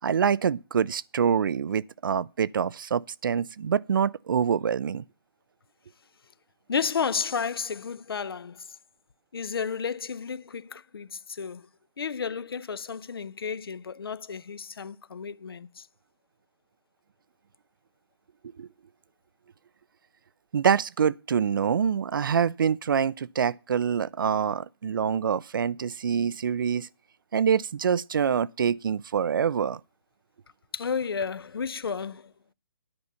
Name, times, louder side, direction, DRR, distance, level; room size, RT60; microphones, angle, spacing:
voice 1, 0.0-5.0 18.6-18.7 20.5-26.9 27.3-29.8, right 7 dB, 60° right, 0.4 m, -25 dB
voice 2, 6.7-8.8 9.3-11.7 12.0-15.9 30.7-32.3, left 6 dB, 75° left, 0.6 m, -32 dB
9.7 x 5.5 x 8.2 m
hypercardioid pair, 160°, 13 cm